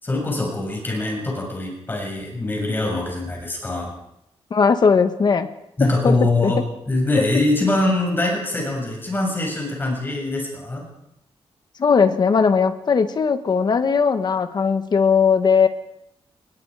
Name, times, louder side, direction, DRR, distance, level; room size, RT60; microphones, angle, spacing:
voice 1, 0.0-3.9 5.8-6.6 6.9-10.9, left 2 dB, 20° left, 0 dB, 6.8 m, -23 dB
voice 2, 4.5-5.5 6.0-6.2 6.4-6.5 11.8-15.7, left 5 dB, 45° left, 9 dB, 1.6 m, -18 dB
29.0 x 21.0 x 5.1 m, 0.80 s
wide cardioid pair, 170°, 10 cm